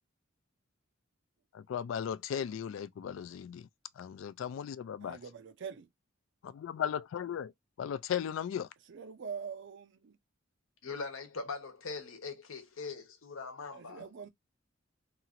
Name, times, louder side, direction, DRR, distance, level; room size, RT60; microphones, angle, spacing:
voice 1, 1.5-3.7 4.0-5.2 6.4-7.5 7.8-8.7, left 8 dB, 70° left, 0.3 m, -36 dB
voice 2, 5.0-5.9 8.9-10.2 13.7-14.3, right 6 dB, 65° right, 0.5 m, -44 dB
voice 3, 10.8-14.1, left 4 dB, 85° left, 0.9 m, -41 dB
2.8 x 2.4 x 2.8 m
head